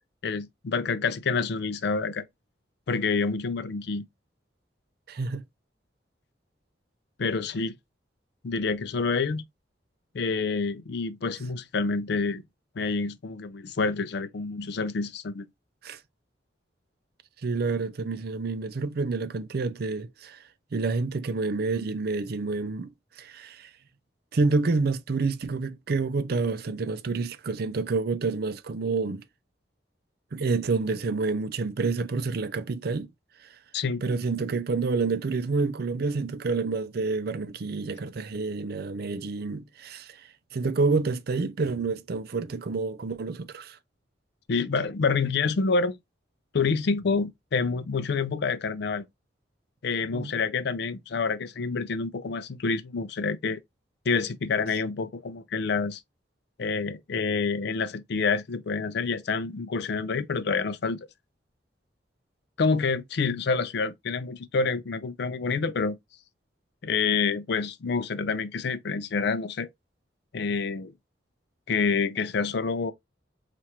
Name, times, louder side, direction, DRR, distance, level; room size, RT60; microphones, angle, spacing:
voice 1, 0.2-2.2 2.9-4.0 7.2-7.7 8.4-9.4 10.1-12.4 12.8-15.5 33.7-34.0 44.5-46.0 46.5-49.0 49.8-53.6 54.1-56.0 56.6-61.0 62.6-66.0 66.8-69.7 70.3-70.9 71.7-72.9, left 4 dB, 65° left, 0.4 m, -27 dB
voice 2, 5.1-5.4 15.8-16.0 17.4-20.4 20.7-22.9 23.2-23.7 24.3-29.2 30.3-33.1 34.0-40.2 40.5-43.8 50.1-50.3, right 4 dB, 60° right, 0.5 m, -28 dB
4.5 x 2.5 x 2.8 m
head